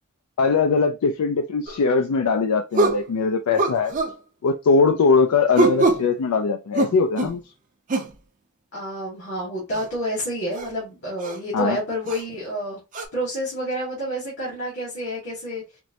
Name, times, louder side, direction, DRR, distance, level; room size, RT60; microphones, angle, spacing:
voice 1, 0.4-3.9 4.4-7.4 11.5-11.8, left 4 dB, 90° left, 0.4 m, -21 dB
sound 1, 1.7-1.8 2.7-3.1 3.6-4.2 5.5-6.1 6.7-7.4 7.9-8.1 9.7-9.9 10.5-10.7 11.2-11.4 12.1-12.2 12.9-13.0, right 3 dB, 35° right, 0.5 m, -23 dB
voice 2, 8.7-12.8 13.1-15.6, equal, 55° left, 1.5 m, -29 dB
4.4 x 2.0 x 2.6 m
head